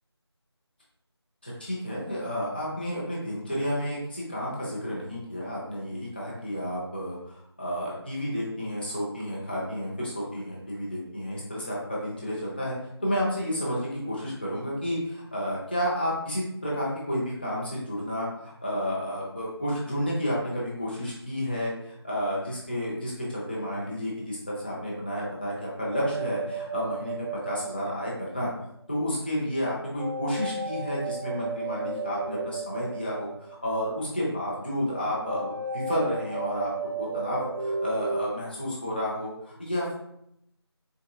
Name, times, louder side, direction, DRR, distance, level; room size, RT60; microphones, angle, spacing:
voice 1, 1.4-12.7 13.0-28.5 28.9-36.7 37.0-39.9, equal, 20° left, -6 dB, 0.6 m, -31 dB
sound 1, 25.9-28.6 30.0-33.9 35.2-38.3, right 3 dB, 45° right, 0.4 m, -34 dB
4.0 x 3.6 x 2.2 m, 0.78 s
figure-of-eight pair, 170°, 14 cm